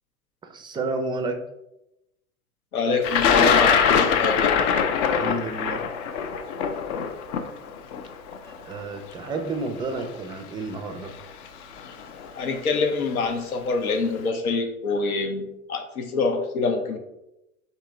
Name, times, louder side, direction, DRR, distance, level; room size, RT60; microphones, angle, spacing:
voice 1, 0.4-1.4 5.1-5.8 8.7-11.1, right 2 dB, 10° right, 5 dB, 0.4 m, -30 dB
voice 2, 2.7-4.5 12.3-17.0, left 4 dB, 80° left, 4 dB, 0.8 m, -26 dB
Thunder, 3.0-9.1 10.0-10.1 11.2-11.5 11.8-12.3, left 6 dB, 50° left, 0.6 m, -22 dB
3.7 x 2.8 x 4.4 m, 0.89 s
figure-of-eight pair, 80°, 43 cm